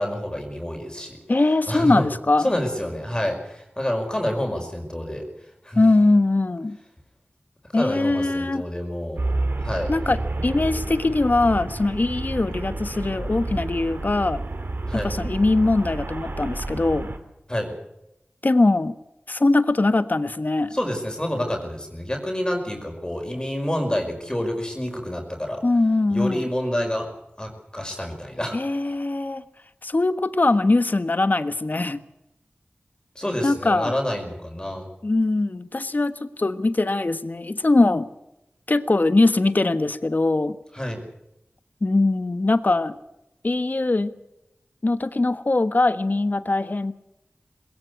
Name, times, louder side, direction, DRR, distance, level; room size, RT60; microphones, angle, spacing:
voice 1, 0.0-1.2 1.7-2.1 2.4-5.3 5.6-5.8 7.7-9.3 9.6-9.9 14.9-15.1 17.5-17.7 20.7-25.6 26.1-27.1 27.4-28.6 33.2-34.9 40.7-41.0, left 1 dB, 20° left, 3 dB, 5.4 m, -28 dB
voice 2, 1.3-2.5 5.7-6.8 7.7-8.6 9.9-14.4 14.9-17.1 18.4-18.9 19.3-20.7 25.6-26.5 28.5-29.4 29.8-32.0 33.4-33.9 35.0-38.1 38.7-40.6 41.8-43.0 43.4-44.1 44.8-46.9, left 2 dB, 50° left, 11 dB, 1.4 m, -21 dB
Traffic noise roadway noise, 9.2-17.2, right 2 dB, 65° right, 2.9 m, -30 dB
20.5 x 18.0 x 8.1 m, 0.86 s
cardioid pair, 40°, 4 cm